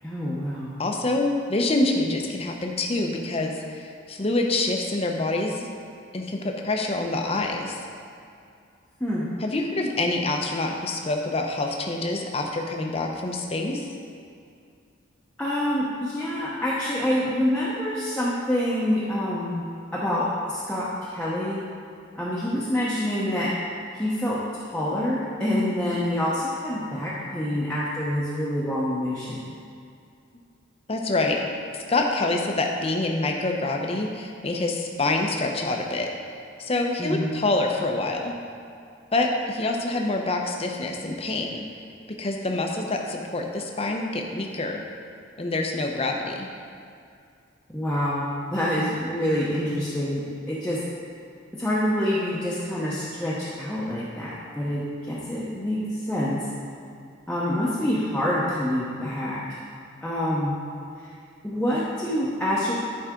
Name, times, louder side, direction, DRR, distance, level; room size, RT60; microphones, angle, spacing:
voice 1, 0.0-0.7 9.0-9.3 15.4-21.6 22.2-23.5 23.9-24.4 24.7-29.4 37.0-37.4 47.7-50.8 51.5-56.4 57.3-59.4 60.0-60.6 61.4-62.7, left 1 dB, 5° left, -9 dB, 0.8 m, -26 dB
voice 2, 0.8-5.7 6.1-7.8 9.4-13.9 30.9-31.4 31.7-36.1 36.6-38.3 39.1-41.6 42.2-44.8 45.4-46.5, left 2 dB, 30° left, 2 dB, 0.7 m, -26 dB
11.0 x 4.8 x 3.7 m, 2.4 s
head